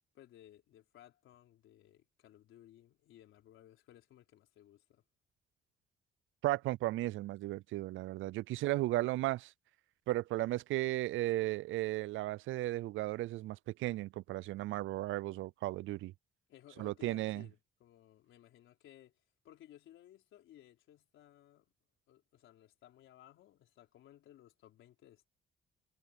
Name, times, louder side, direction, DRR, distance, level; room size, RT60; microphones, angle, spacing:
voice 1, 0.0-5.0 8.7-8.9 16.5-21.7 22.1-25.3, left 12 dB, 80° left, 4.5 m, -59 dB
voice 2, 6.4-9.5 10.1-16.1 16.8-17.4, right 17 dB, 80° right, 0.4 m, -35 dB
cardioid pair, 90°, 20 cm